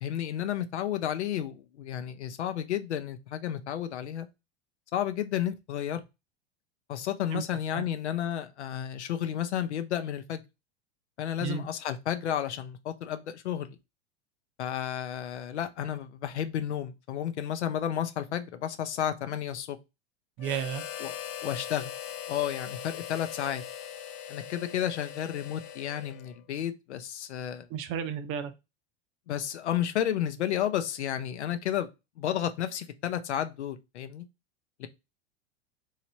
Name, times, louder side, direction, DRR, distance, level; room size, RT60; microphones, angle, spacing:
voice 1, 0.0-4.3 4.9-6.0 6.9-10.4 11.2-13.8 14.6-19.8 21.0-21.1 21.4-21.9 22.3-23.6 24.3-27.7 29.3-31.9 32.2-34.3 34.8-34.9, left 10 dB, 90° left, 0.6 m, -32 dB
Harmonica, 20.4-26.4, left 10 dB, 50° left, 0.6 m, -40 dB
voice 2, 20.4-20.8 27.7-28.5, right 8 dB, 40° right, 0.6 m, -32 dB
3.2 x 2.8 x 2.7 m
hypercardioid pair, 105°, 33 cm